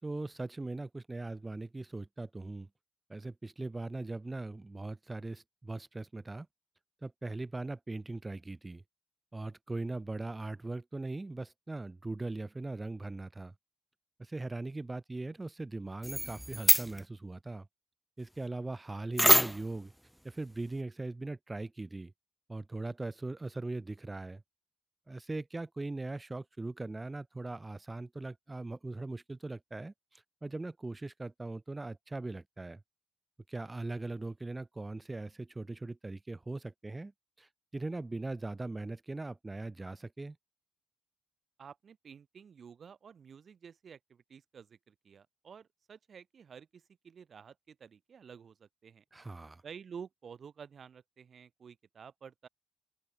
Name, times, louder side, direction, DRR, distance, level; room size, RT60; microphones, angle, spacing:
voice 1, 0.0-2.7 3.1-6.5 7.0-8.8 9.3-13.5 14.2-17.7 18.2-19.9 20.2-22.1 22.5-24.4 25.1-32.8 33.5-37.1 37.4-40.4 49.1-49.6, right 2 dB, 20° right, 3.0 m, -40 dB
sound 1, 16.0-17.0 19.2-19.8, equal, ahead, 0.4 m, -25 dB
voice 2, 41.6-49.0 49.6-52.5, right 7 dB, 50° right, 3.9 m, -51 dB
open air
cardioid pair, 90°, 0 cm